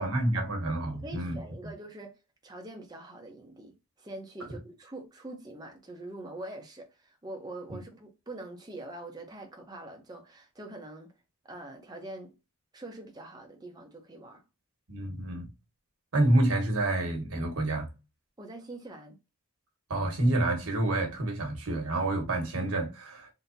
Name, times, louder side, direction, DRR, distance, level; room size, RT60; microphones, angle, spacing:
voice 1, 0.0-1.4 7.7-7.8 14.9-15.5 16.1-17.9 19.9-23.3, right 1 dB, 75° right, 1.2 m, -28 dB
voice 2, 1.0-2.1 2.4-11.1 11.4-12.3 12.7-14.4 18.4-19.2, right 2 dB, 15° right, 0.7 m, -44 dB
3.7 x 2.7 x 2.6 m
head